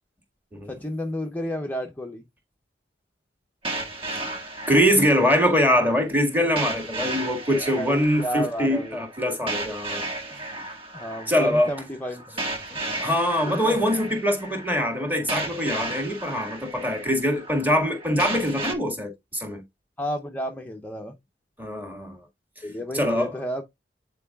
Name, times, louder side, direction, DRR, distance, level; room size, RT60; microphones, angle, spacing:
voice 1, 0.7-2.2 7.8-9.0 10.9-12.4 12.7-12.8 13.5-13.8 20.0-21.2 22.6-23.6, equal, 10° left, 0.6 m, -31 dB
sound 1, 3.6-18.7, right 2 dB, 35° right, 1.4 m, -34 dB
voice 2, 4.7-10.0 10.3-10.4 11.3-11.7 13.0-19.6 21.6-22.2 22.9-23.3, equal, 10° right, 1.8 m, -23 dB
9.0 x 4.6 x 2.3 m
head